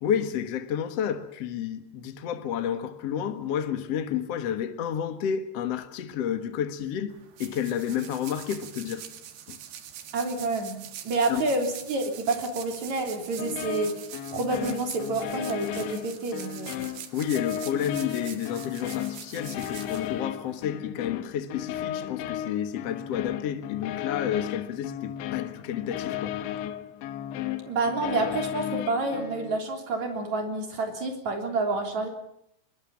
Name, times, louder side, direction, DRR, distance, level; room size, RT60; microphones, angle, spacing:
voice 1, 0.0-7.1 7.4-9.1 9.5-9.6 11.3-11.4 17.1-26.4, left 9 dB, 70° left, 1.5 m, -30 dB
sound 1, 7.1-20.7, right 10 dB, 65° right, 3.6 m, -44 dB
voice 2, 10.1-10.7 11.0-14.0 14.3-16.8 27.7-32.1, right 3 dB, 40° right, 4.4 m, -28 dB
sound 2, 13.4-29.6, left 11 dB, 85° left, 3.4 m, -35 dB
24.0 x 22.0 x 7.2 m
omnidirectional pair, 5.2 m